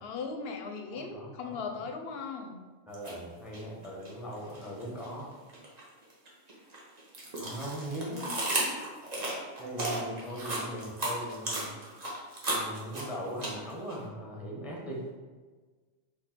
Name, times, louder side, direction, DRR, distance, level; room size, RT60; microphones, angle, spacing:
voice 1, 0.0-2.7 8.0-8.7, left 4 dB, 65° left, 4 dB, 0.7 m, -39 dB
voice 2, 0.9-1.6 2.9-5.3 7.4-8.3 9.6-11.7 12.5-15.0, equal, ahead, -3 dB, 0.7 m, -39 dB
sound 1, 2.9-3.1 3.5-5.1 5.5-13.9, right 1 dB, 35° right, 1.0 m, -34 dB
4.5 x 2.7 x 4.3 m, 1.4 s
omnidirectional pair, 1.2 m